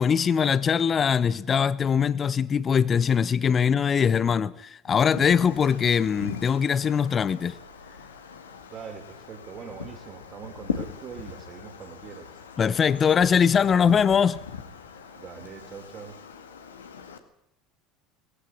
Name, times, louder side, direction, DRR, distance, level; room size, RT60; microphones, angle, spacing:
voice 1, 0.0-7.6 12.6-14.4, left 7 dB, 35° left, 0.8 m, -22 dB
Wind, 4.9-17.2, left 6 dB, 85° left, 1.8 m, -40 dB
voice 2, 8.7-12.5 15.1-16.2, right 6 dB, 40° right, 3.7 m, -42 dB
19.0 x 15.5 x 9.7 m
hypercardioid pair, 70°, 0 cm